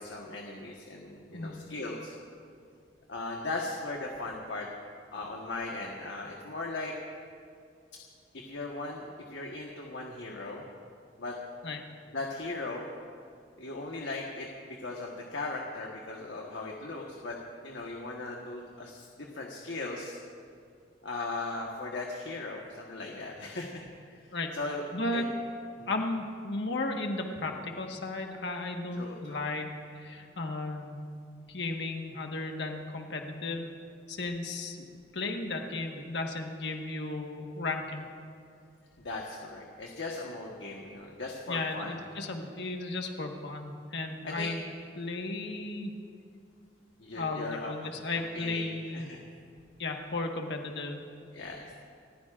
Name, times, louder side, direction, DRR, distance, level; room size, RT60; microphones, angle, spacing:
voice 1, 0.0-2.1 3.1-4.7 5.1-6.9 8.3-10.7 11.2-11.4 12.1-12.9 13.6-17.4 17.6-20.2 21.0-23.8 24.1-24.8 25.1-25.2 25.8-25.9 29.0-29.5 39.0-42.0 44.2-44.5 47.0-47.9 48.3-48.7 48.9-49.2 51.3-51.7, left 2 dB, 85° left, -1 dB, 1.3 m, -38 dB
voice 2, 24.9-25.3 25.9-31.0 31.5-33.7 34.1-34.9 35.1-38.1 41.5-44.6 45.0-45.9 47.2-49.1 49.8-51.0, left 2 dB, 70° left, 3 dB, 1.5 m, -35 dB
29.5 x 14.5 x 2.5 m, 2.3 s
head